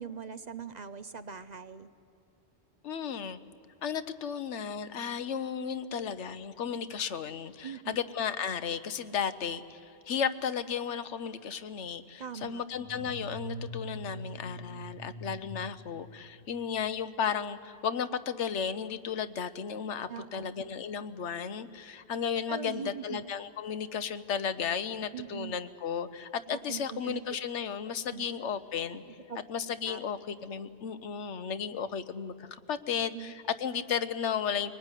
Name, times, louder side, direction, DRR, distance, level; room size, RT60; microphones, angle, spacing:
voice 1, 0.0-1.9 7.6-8.0 12.2-12.6 20.1-20.5 22.5-23.2 25.1-25.6 26.5-27.2 28.1-28.3 29.3-29.4 29.9-30.0 33.1-33.3, right 7 dB, 45° right, 12 dB, 0.7 m, -41 dB
voice 2, 2.8-3.4 3.8-29.0 29.5-34.8, left 7 dB, 85° left, 13 dB, 1.2 m, -34 dB
sound 1, 12.7-16.8, equal, 70° left, 1.3 m, -43 dB
22.5 x 19.5 x 9.8 m, 2.7 s
omnidirectional pair, 1.2 m